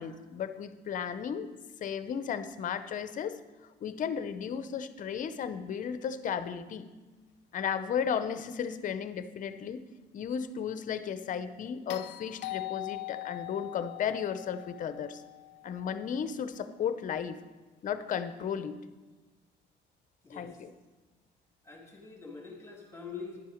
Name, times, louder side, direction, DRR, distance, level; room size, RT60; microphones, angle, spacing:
voice 1, 0.0-1.5 1.8-3.4 3.8-6.9 7.5-9.8 10.1-15.2 15.6-17.4 17.8-18.8 20.3-20.7, left 7 dB, 45° left, 11 dB, 0.7 m, -34 dB
sound 1, 11.9-16.2 18.4-18.5, left 18 dB, 85° left, 0.4 m, -42 dB
voice 2, 20.2-20.5 21.6-23.4, left 5 dB, 15° left, 0 dB, 1.8 m, -44 dB
10.5 x 7.3 x 5.0 m, 1.3 s
cardioid pair, 125°, 18 cm